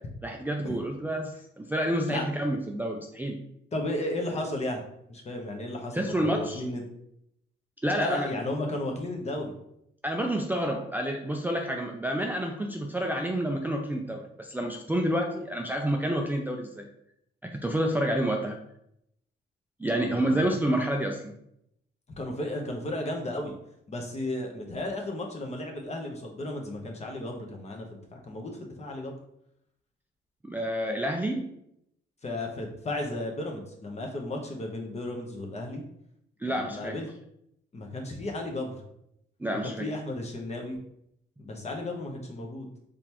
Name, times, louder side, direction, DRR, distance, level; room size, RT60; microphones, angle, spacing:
voice 1, 0.2-3.4 5.9-6.6 7.8-8.3 10.0-16.9 17.4-18.6 19.8-21.3 30.4-31.5 36.4-37.0 39.4-39.9, right 1 dB, 10° right, 2 dB, 0.4 m, -29 dB
voice 2, 3.7-4.8 5.1-6.8 8.0-9.5 20.0-20.5 22.2-23.6 23.9-29.2 32.2-35.8 36.4-37.1 37.7-38.8 39.6-40.8 41.4-42.7, left 1 dB, 35° left, 1 dB, 1.0 m, -34 dB
3.9 x 3.4 x 3.0 m, 0.76 s
cardioid pair, 90°, 20 cm